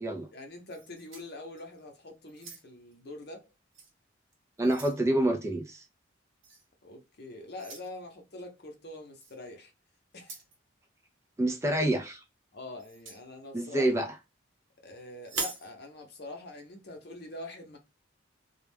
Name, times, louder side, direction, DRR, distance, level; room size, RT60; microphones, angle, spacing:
voice 1, 0.3-3.5 6.8-9.7 10.1-10.4 12.5-14.0 14.8-17.8, left 2 dB, 55° left, 0.7 m, -44 dB
sound 1, 0.7-1.8 2.3-2.9 3.7-3.9 4.3-5.0 6.4-6.7 7.6-7.9 9.2-9.4 10.1-10.6 12.8-13.2 15.2-15.7, right 4 dB, 85° right, 1.0 m, -41 dB
voice 2, 4.6-5.8 11.4-12.2 13.5-14.1, right 1 dB, 15° right, 0.3 m, -27 dB
2.3 x 2.1 x 3.2 m
head